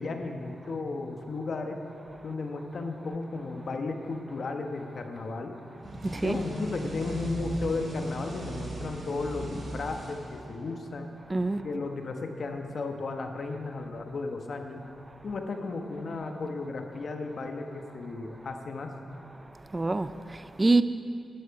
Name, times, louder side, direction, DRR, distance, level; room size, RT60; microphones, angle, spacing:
voice 1, 0.0-1.8 2.2-5.5 6.2-11.1 11.6-14.8 15.2-18.9, left 3 dB, 65° left, 1.1 m, -34 dB
sound 1, 5.8-10.7, right 1 dB, 60° right, 3.2 m, -38 dB
voice 2, 6.0-6.4 11.3-11.6 19.7-20.8, right 2 dB, 25° right, 0.4 m, -25 dB
12.5 x 10.5 x 4.8 m
cardioid pair, 65°, 0 cm